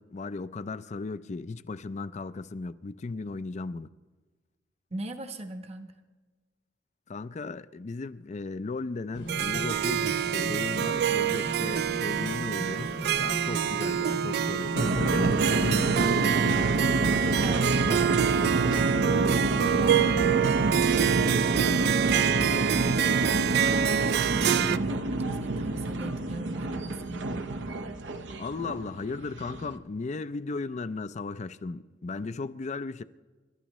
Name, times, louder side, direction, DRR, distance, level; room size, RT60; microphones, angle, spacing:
voice 1, 0.0-3.9 7.1-16.3 28.4-33.0, left 3 dB, 40° left, 0.4 m, -36 dB
voice 2, 4.9-5.9 17.4-19.5 19.8-22.3 22.6-27.3, right 1 dB, 35° right, 1.0 m, -39 dB
sound 1, 9.1-15.3, right 1 dB, 70° left, 1.5 m, -37 dB
Harp, 9.3-24.8, right 9 dB, 60° right, 0.3 m, -27 dB
sound 2, 14.8-29.8, right 2 dB, 75° right, 0.8 m, -28 dB
27.5 x 12.0 x 3.1 m
head